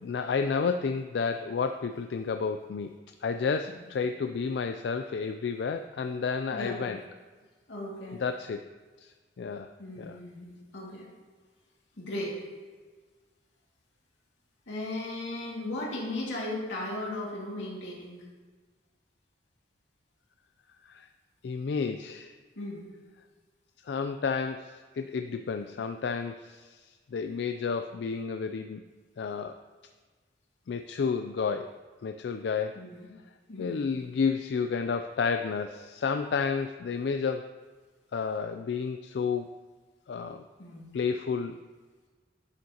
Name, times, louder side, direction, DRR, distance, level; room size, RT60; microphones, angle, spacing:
voice 1, 0.0-2.9 3.2-7.0 8.2-8.6 9.0-9.1 9.4-9.7 10.0-10.2 20.8-21.1 21.4-22.3 23.8-28.8 29.2-29.5 30.7-31.7 32.0-32.7 33.6-37.4 38.1-39.5 40.1-40.4 40.9-41.6, left 5 dB, 65° left, 7 dB, 0.3 m, -31 dB
voice 2, 6.5-6.9 7.7-8.2 9.8-11.1 12.0-12.4 14.7-18.3 22.6-22.9 32.7-33.1 33.5-34.0 40.6-40.9, left 1 dB, 85° left, -4 dB, 2.2 m, -37 dB
11.5 x 6.3 x 2.8 m, 1.4 s
head